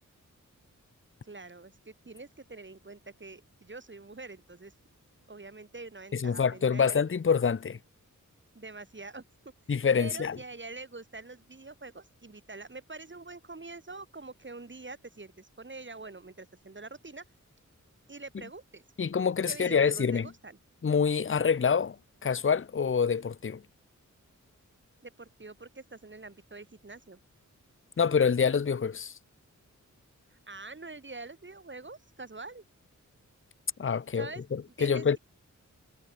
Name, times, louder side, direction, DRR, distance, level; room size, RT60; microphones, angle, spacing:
voice 1, 1.2-4.8 5.3-7.0 8.5-9.2 10.0-17.2 18.1-18.8 19.5-20.6 25.0-27.2 30.3-32.6 34.1-34.4 34.8-35.2, right 3 dB, 40° right, 7.9 m, -45 dB
voice 2, 6.1-7.8 9.7-10.4 19.0-20.3 20.8-22.0 22.2-23.6 28.0-29.1 33.8-35.2, left 6 dB, 40° left, 0.8 m, -26 dB
wide cardioid pair, 110°, 31 cm